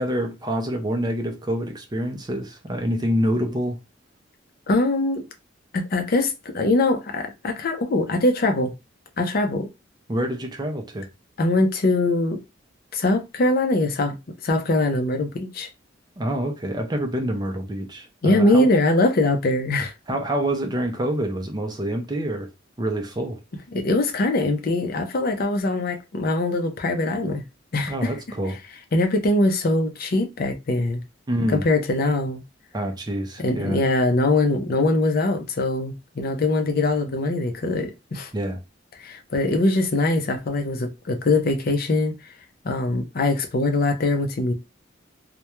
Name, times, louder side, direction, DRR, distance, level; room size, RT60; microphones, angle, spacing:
voice 1, 0.0-3.8 10.1-11.1 16.2-18.7 20.1-22.5 22.8-23.4 27.9-28.6 31.3-31.6 32.7-33.8 38.3-38.6, right 1 dB, 20° right, 0.4 m, -26 dB
voice 2, 4.7-5.2 5.7-8.7 9.2-9.7 11.4-12.4 12.9-14.2 14.4-15.7 18.2-19.9 23.7-27.4 27.7-28.1 28.9-31.0 31.5-32.4 33.4-38.3 39.0-42.1 42.6-44.5, left 2 dB, 50° left, 0.5 m, -22 dB
2.3 x 2.2 x 2.9 m
head